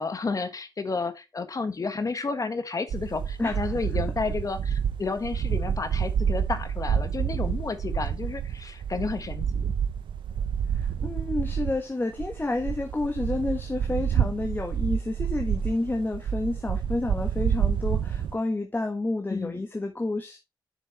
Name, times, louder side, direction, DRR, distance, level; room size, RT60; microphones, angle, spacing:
voice 1, 0.0-9.7 19.3-19.6, left 4 dB, 45° left, 1.3 m, -31 dB
sound 1, 2.9-11.8 12.2-18.4, right 8 dB, 85° right, 0.7 m, -28 dB
voice 2, 3.4-3.8 10.7-20.4, left 2 dB, 25° left, 1.3 m, -30 dB
7.4 x 6.5 x 3.1 m
cardioid pair, 60°, 8 cm